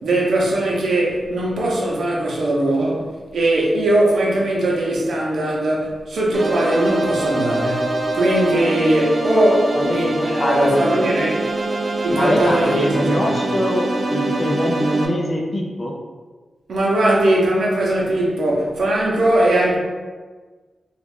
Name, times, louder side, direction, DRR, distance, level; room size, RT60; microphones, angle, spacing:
voice 1, 0.0-11.3 12.0-13.4 16.7-19.8, right 1 dB, 70° right, -4 dB, 0.7 m, -20 dB
sound 1, 6.3-15.1, right 2 dB, 45° right, 0.4 m, -24 dB
voice 2, 9.7-10.9 11.2-11.3 12.1-15.9, equal, 30° left, 0 dB, 0.4 m, -22 dB
3.0 x 2.4 x 3.5 m, 1.4 s
wide cardioid pair, 175°, 0 cm